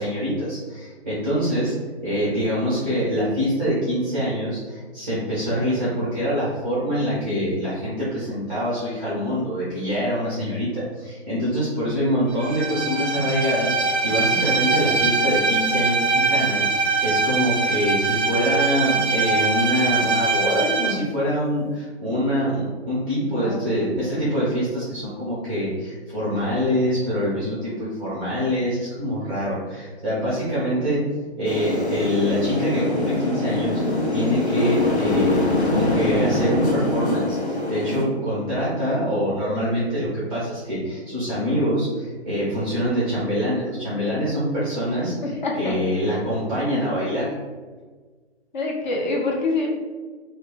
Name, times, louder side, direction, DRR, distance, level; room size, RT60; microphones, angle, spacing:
voice 1, 0.0-1.7 2.0-31.0 31.4-45.3 45.6-47.3, equal, 10° right, -9 dB, 0.4 m, -25 dB
Bowed string instrument, 12.4-21.0, right 4 dB, 90° right, 0.5 m, -22 dB
voice 2, 23.3-23.6 45.2-45.8 48.5-49.7, left 3 dB, 45° left, -1 dB, 0.6 m, -25 dB
sound 1, 31.4-38.0, left 2 dB, 80° left, 0.8 m, -23 dB
2.5 x 2.2 x 3.6 m, 1.4 s
figure-of-eight pair, 130°, 33 cm